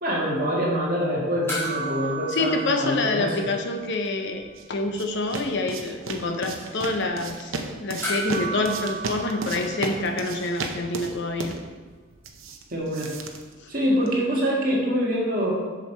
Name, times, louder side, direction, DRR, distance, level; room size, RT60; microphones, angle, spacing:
voice 1, 0.0-3.5 12.7-13.1 13.7-15.5, equal, 40° right, -4 dB, 1.7 m, -25 dB
sound 1, 1.5-4.1 4.4-4.5 8.0-10.6 12.8-12.9, right 2 dB, 10° left, 2.1 m, -34 dB
voice 2, 2.3-7.5 7.8-11.5 13.6-13.7, left 2 dB, 55° left, 4 dB, 0.8 m, -27 dB
sound 2, 4.2-14.2, right 3 dB, 65° right, 0.7 m, -35 dB
7.2 x 6.3 x 4.4 m, 1.4 s
head